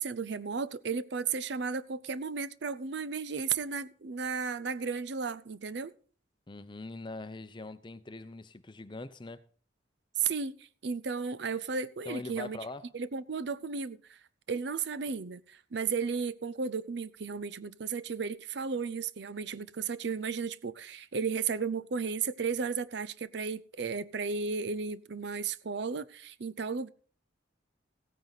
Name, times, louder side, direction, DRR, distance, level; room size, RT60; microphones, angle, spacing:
voice 1, 0.0-5.9 10.2-12.6 12.9-14.2 14.5-26.9, right 5 dB, 60° right, 0.5 m, -34 dB
voice 2, 6.5-9.4 12.0-12.9, left 2 dB, 25° left, 0.6 m, -42 dB
16.0 x 9.2 x 4.0 m
head